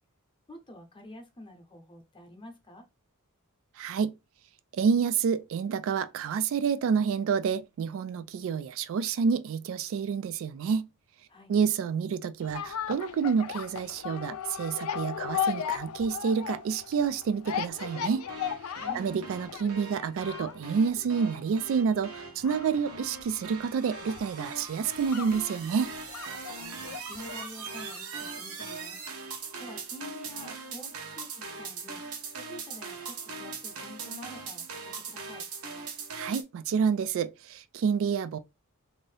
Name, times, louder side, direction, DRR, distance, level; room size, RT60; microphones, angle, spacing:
voice 1, 0.5-2.9 11.3-11.5 18.8-19.1 26.4-29.0 29.6-32.0 32.3-35.4, left 1 dB, 25° left, 0.7 m, -48 dB
voice 2, 3.8-4.1 4.7-10.9 11.5-18.2 18.9-25.9 36.1-38.4, right 6 dB, 65° right, 0.3 m, -28 dB
sound 1, 12.4-27.6 27.9-28.0, left 8 dB, 80° left, 0.4 m, -37 dB
sound 2, 17.5-36.4, right 4 dB, 90° right, 0.9 m, -41 dB
2.7 x 2.6 x 3.2 m
head